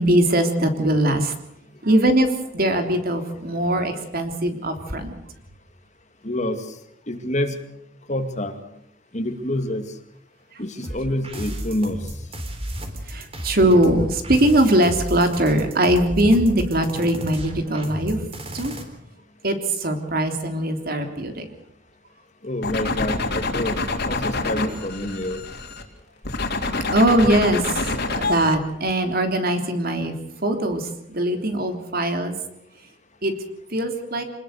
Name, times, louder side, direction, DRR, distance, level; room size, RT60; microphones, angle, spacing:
voice 1, 0.0-1.3 1.8-5.1 10.5-10.6 13.0-18.2 18.5-18.7 19.4-21.5 26.5-30.1 30.4-32.3 33.2-33.3 33.7-34.3, right 1 dB, 50° right, 6 dB, 3.3 m, -21 dB
voice 2, 6.2-6.7 7.1-7.6 8.1-8.5 9.1-9.8 10.6-12.0 22.4-23.8 24.1-25.4, left 1 dB, 35° left, 7 dB, 2.3 m, -27 dB
sound 1, 10.8-18.8, equal, 30° right, 3.8 m, -33 dB
sound 2, 22.6-25.8 26.2-28.6, left 3 dB, 55° left, 3.5 m, -26 dB
26.0 x 20.0 x 6.7 m, 0.74 s
head